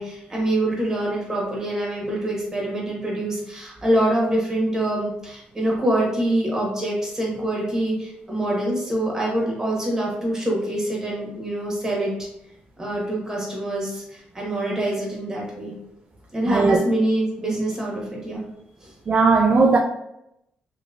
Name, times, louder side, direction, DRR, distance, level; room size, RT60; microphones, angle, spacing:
voice 1, 0.0-12.3 12.8-15.7 16.3-18.4 18.8-18.9, right 1 dB, 15° right, -3 dB, 1.4 m, -25 dB
voice 2, 16.5-16.8 19.1-19.8, right 4 dB, 35° right, 2 dB, 0.4 m, -17 dB
3.0 x 2.9 x 2.5 m, 0.81 s
cardioid pair, 90°, 3 cm